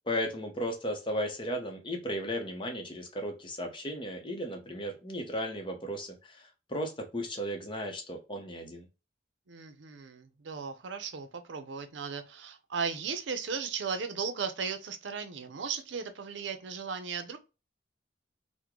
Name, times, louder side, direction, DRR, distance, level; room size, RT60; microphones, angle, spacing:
voice 1, 0.1-8.8, equal, 25° left, 0.7 m, -35 dB
voice 2, 9.5-17.4, right 6 dB, 80° right, 0.6 m, -36 dB
3.6 x 2.1 x 2.9 m
head